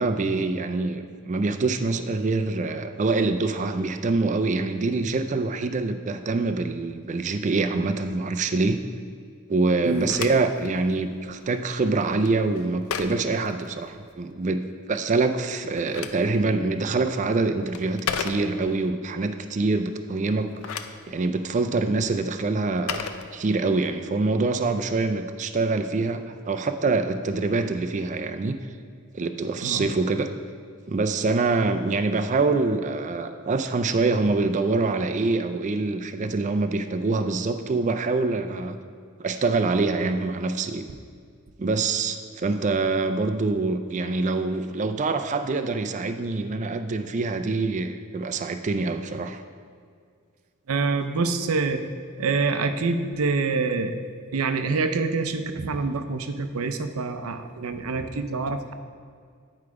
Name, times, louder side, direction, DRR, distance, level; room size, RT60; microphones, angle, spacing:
voice 1, 0.0-8.8 9.5-14.6 14.9-28.6 29.1-30.3 30.9-38.8 39.2-40.9 41.6-49.4, right 3 dB, 35° right, 8 dB, 0.4 m, -25 dB
Telephone, 9.7-14.3 15.5-18.9 20.3-23.9, left 6 dB, 90° left, 0.5 m, -37 dB
voice 2, 50.7-51.8 52.2-54.0 54.3-58.7, right 4 dB, 80° right, 8 dB, 0.6 m, -26 dB
9.7 x 4.8 x 4.8 m, 2.1 s
head